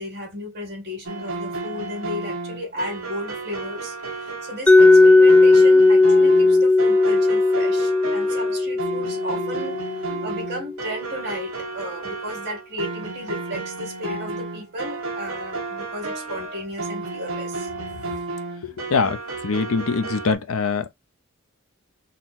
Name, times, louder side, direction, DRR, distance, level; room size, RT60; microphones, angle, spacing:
voice 1, 0.0-17.7, equal, 50° right, 1.9 m, -34 dB
sound 1, 1.0-20.3, right 3 dB, 75° right, 1.0 m, -32 dB
Mallet percussion, 4.7-10.5, left 2 dB, 5° left, 0.4 m, -16 dB
voice 2, 18.6-20.9, left 4 dB, 80° left, 0.6 m, -24 dB
4.1 x 2.1 x 4.2 m
head